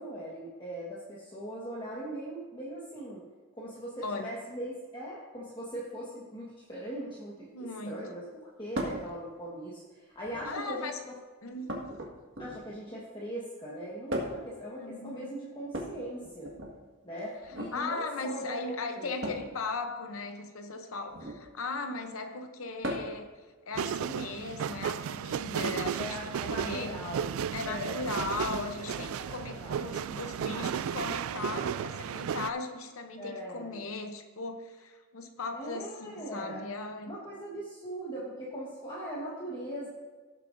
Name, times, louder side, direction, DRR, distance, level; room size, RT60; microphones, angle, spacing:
voice 1, 0.0-3.3 3.5-11.1 12.4-16.5 17.0-19.1 26.0-29.8 31.4-31.7 33.2-33.8 35.5-36.6 37.0-39.9, equal, 20° left, -6 dB, 1.4 m, -40 dB
voice 2, 4.0-4.3 7.5-8.1 10.4-11.0 11.4-11.9 14.8-15.3 17.7-23.3 23.7-27.0 27.5-37.2, left 3 dB, 70° left, 5 dB, 0.8 m, -38 dB
sound 1, 8.7-9.1 10.1-10.6 11.7-12.8 14.1-14.5 15.6-16.7 17.4-17.7 19.2-19.5 21.1-21.5 22.8-23.2 24.7-24.8 26.0-26.1, equal, 55° right, 1.7 m, -36 dB
sound 2, 23.7-32.5, right 8 dB, 75° right, 0.3 m, -34 dB
17.0 x 7.6 x 2.6 m, 1.3 s
head